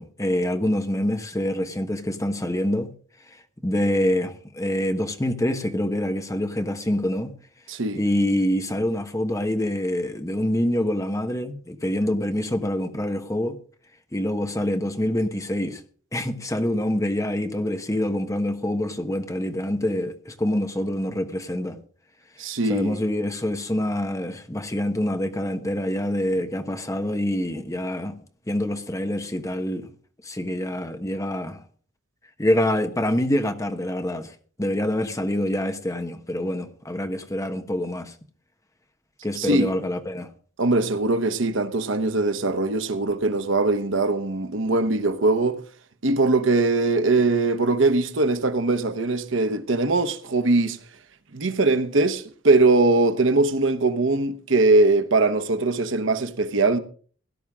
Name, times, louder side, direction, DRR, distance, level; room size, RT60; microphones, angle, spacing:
voice 1, 0.0-2.9 3.3-3.4 3.6-7.4 8.0-13.6 14.1-15.8 16.1-21.8 22.7-28.2 28.5-29.9 30.2-31.6 32.4-38.1 39.2-40.3, left 1 dB, 15° left, 1.2 m, -26 dB
voice 2, 7.7-8.0 22.4-23.0 39.4-39.7 40.6-45.6 46.0-50.8 51.3-56.8, right 2 dB, 70° right, 1.1 m, -21 dB
17.5 x 11.5 x 3.6 m
head